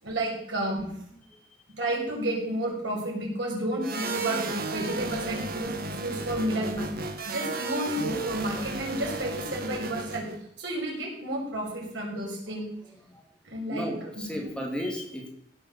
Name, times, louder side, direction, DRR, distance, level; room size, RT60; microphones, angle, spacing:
voice 1, 0.0-0.8 1.8-5.7 6.0-6.9 7.3-10.2 10.6-12.6 13.4-13.9 14.1-14.5, right 1 dB, 80° right, -2 dB, 6.3 m, -31 dB
sound 1, 3.8-10.4, right 3 dB, 55° right, 1.7 m, -34 dB
voice 2, 13.7-15.3, equal, 5° left, 0 dB, 2.5 m, -34 dB
16.5 x 7.3 x 7.3 m, 0.71 s
head